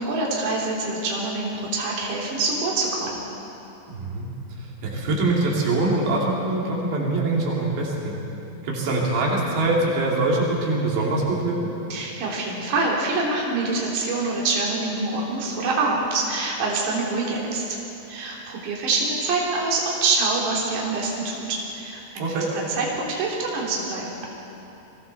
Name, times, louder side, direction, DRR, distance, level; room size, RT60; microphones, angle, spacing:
voice 1, 0.0-3.2 11.9-17.6 18.1-22.4 22.7-24.1, right 3 dB, 50° right, -4 dB, 4.5 m, -25 dB
voice 2, 3.9-4.3 4.6-8.2 8.6-11.7 22.2-22.5, right 2 dB, 80° right, -3 dB, 5.0 m, -23 dB
29.5 x 21.5 x 4.2 m, 3.0 s
omnidirectional pair, 5.0 m